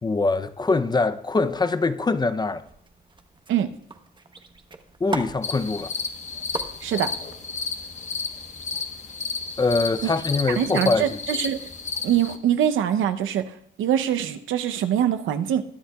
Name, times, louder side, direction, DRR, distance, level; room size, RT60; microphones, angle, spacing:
voice 1, 0.0-2.6 5.0-5.9 9.6-11.2, left 3 dB, 20° left, 0.6 m, -23 dB
sound 1, 2.6-9.1, right 3 dB, 25° right, 1.1 m, -40 dB
sound 2, 5.4-12.4, left 5 dB, 35° left, 1.1 m, -32 dB
voice 2, 6.8-7.1 10.0-10.1 10.6-11.6 12.0-13.5 13.8-15.6, right 10 dB, 80° right, 0.7 m, -23 dB
20.5 x 10.0 x 2.3 m
cardioid pair, 90°, 20 cm